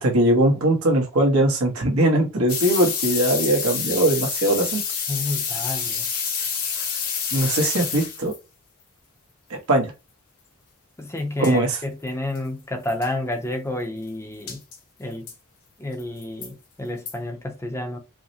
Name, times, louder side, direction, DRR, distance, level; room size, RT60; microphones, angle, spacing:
voice 1, 0.0-4.8 7.3-8.3 9.7-9.9 11.4-11.8, right 1 dB, 80° right, 1.1 m, -20 dB
sound 1, 2.5-8.4 11.2-11.3 11.4-11.5 12.1-12.2 12.3-12.4 12.9-13.1 14.5-14.8 15.3-15.4 16.0-16.5 17.1-17.2, left 6 dB, 85° left, 1.2 m, -28 dB
voice 2, 5.1-6.0 7.4-7.5 11.0-14.6 15.0-15.3 15.8-18.0, left 1 dB, 15° left, 0.5 m, -30 dB
4.7 x 2.1 x 2.7 m
head